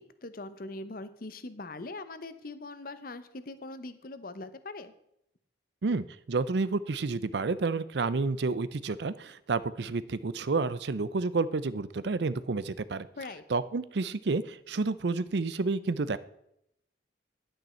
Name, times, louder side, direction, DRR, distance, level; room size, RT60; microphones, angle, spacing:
voice 1, 0.0-4.9 13.2-13.4, left 2 dB, 50° left, 12 dB, 0.8 m, -41 dB
voice 2, 5.8-13.1 13.5-16.2, right 3 dB, 65° right, 16 dB, 0.5 m, -30 dB
10.5 x 9.0 x 4.4 m, 0.78 s
head